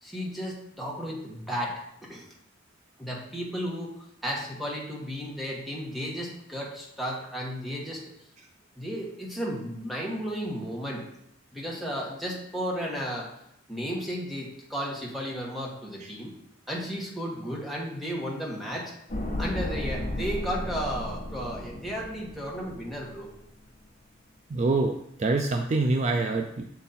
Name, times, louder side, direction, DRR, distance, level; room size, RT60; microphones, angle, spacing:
voice 1, 0.0-2.3 3.0-8.0 8.8-11.1 11.5-13.3 13.7-16.3 16.7-18.9 19.4-23.3, equal, ahead, -3 dB, 1.3 m, -34 dB
sound 1, 19.1-23.4 23.6-23.7, left 1 dB, 40° left, 1.0 m, -34 dB
voice 2, 24.5-26.6, right 3 dB, 35° right, 4 dB, 0.4 m, -25 dB
7.2 x 3.9 x 4.2 m, 0.78 s
head